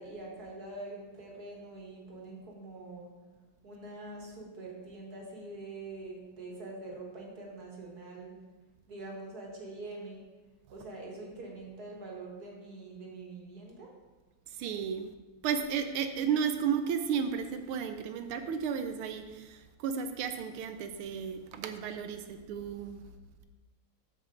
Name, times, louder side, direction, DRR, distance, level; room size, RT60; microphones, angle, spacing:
voice 1, 0.0-3.1 3.6-8.4 8.9-10.2 10.7-13.9, right 2 dB, 50° right, -1 dB, 2.0 m, -44 dB
voice 2, 14.5-15.1 15.4-23.0, right 7 dB, 80° right, 8 dB, 1.5 m, -33 dB
13.5 x 5.1 x 3.8 m, 1.2 s
omnidirectional pair, 2.4 m